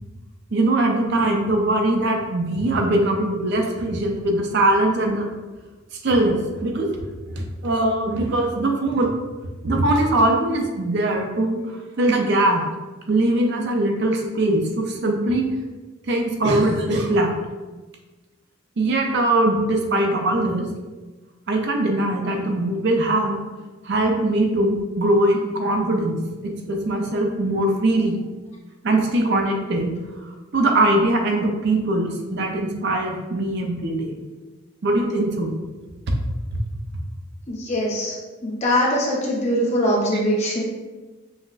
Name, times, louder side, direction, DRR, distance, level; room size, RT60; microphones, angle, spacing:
voice 1, 0.5-5.3 6.0-7.0 7.3-9.1 9.6-12.6 13.1-15.4 16.1-17.3 18.8-20.7 21.5-23.4 23.8-28.2 28.8-29.9 30.2-34.2 34.8-35.5 36.1-36.2, right 1 dB, 60° right, 2 dB, 0.5 m, -21 dB
voice 2, 37.5-38.2 38.4-40.6, equal, 35° left, -4 dB, 0.8 m, -22 dB
5.5 x 2.1 x 2.4 m, 1.3 s
head